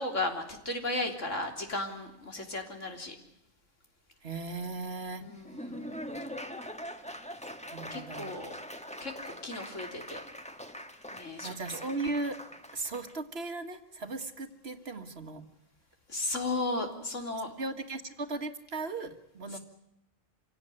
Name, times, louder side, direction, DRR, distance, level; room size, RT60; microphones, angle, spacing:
voice 1, 0.0-3.2 5.2-5.8 7.9-8.5 9.0-10.2 11.1-11.8 16.1-17.5 19.5-19.6, left 2 dB, 70° left, 3 dB, 3.8 m, -35 dB
voice 2, 4.2-5.2 7.7-8.3 11.4-12.4 12.7-15.4 17.6-19.6, right 3 dB, 50° right, 7 dB, 1.9 m, -37 dB
Laughter / Applause, 5.3-13.2, equal, 5° left, 1.4 m, -43 dB
26.5 x 17.0 x 9.9 m, 0.84 s
omnidirectional pair, 1.4 m